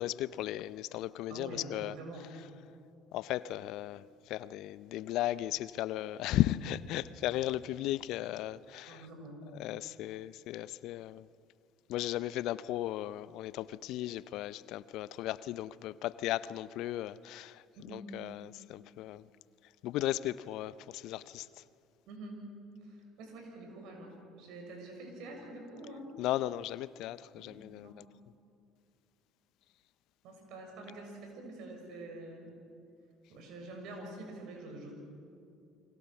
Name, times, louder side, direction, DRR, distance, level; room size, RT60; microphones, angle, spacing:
voice 1, 0.0-1.9 3.1-9.0 9.6-11.3 11.9-19.3 19.8-21.5 26.2-28.1, left 14 dB, 65° left, 18 dB, 0.6 m, -36 dB
voice 2, 1.3-2.2 8.9-9.4 17.8-18.0 22.1-22.4 22.8-26.1 27.4-28.0 30.2-32.5 33.3-34.9, right 2 dB, 65° right, 2 dB, 6.6 m, -46 dB
29.5 x 23.0 x 6.1 m, 2.5 s
hypercardioid pair, 65°, 0 cm